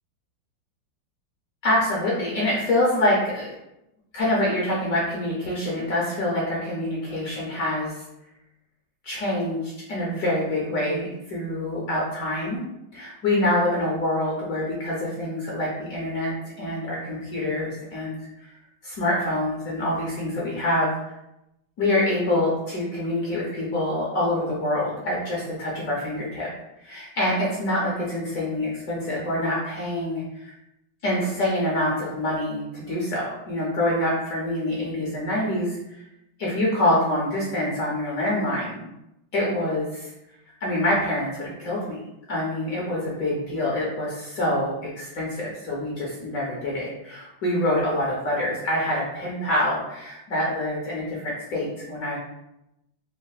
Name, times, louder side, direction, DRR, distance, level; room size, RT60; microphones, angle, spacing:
voice 1, 1.6-3.6 4.1-8.0 9.0-12.6 12.9-18.2 18.8-21.1 21.8-26.5 26.8-30.5 31.0-36.0 36.4-38.9 39.3-40.1 40.6-42.0 42.3-52.2, left 1 dB, 65° left, -5 dB, 0.9 m, -26 dB
4.0 x 2.0 x 2.3 m, 0.88 s
omnidirectional pair, 2.1 m